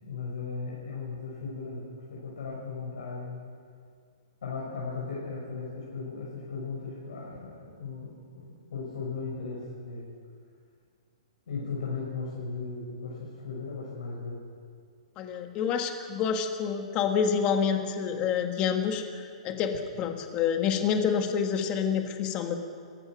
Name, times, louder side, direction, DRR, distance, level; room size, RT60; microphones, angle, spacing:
voice 1, 0.0-3.4 4.4-10.0 11.5-14.4, left 4 dB, 80° left, -5 dB, 6.7 m, -37 dB
voice 2, 15.2-22.5, left 7 dB, 20° left, 5 dB, 1.6 m, -28 dB
29.0 x 15.5 x 6.3 m, 2.1 s
hypercardioid pair, 165°, 4 cm